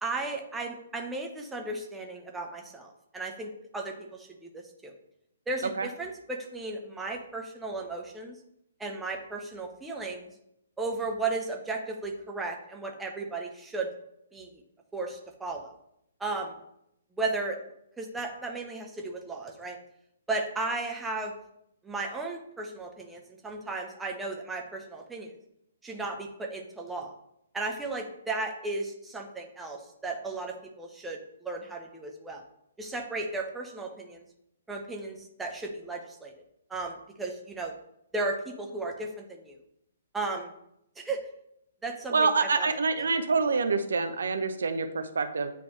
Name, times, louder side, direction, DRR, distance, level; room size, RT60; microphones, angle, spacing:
voice 1, 0.0-4.9 5.5-8.4 8.8-10.3 10.8-13.9 14.3-14.6 14.9-15.7 16.2-16.6 17.1-17.6 18.0-19.8 20.3-21.3 21.8-25.3 25.8-27.1 27.5-32.4 32.8-34.2 34.7-36.3 36.7-37.7 38.1-39.6 40.1-40.5 41.0-41.2 41.8-42.3 42.6-42.7 43.0-43.1, right 3 dB, 5° right, 1 dB, 0.8 m, -35 dB
voice 2, 42.1-45.5, right 4 dB, 60° right, 9 dB, 0.6 m, -26 dB
9.3 x 3.4 x 3.2 m, 0.78 s
figure-of-eight pair, 125°, 0 cm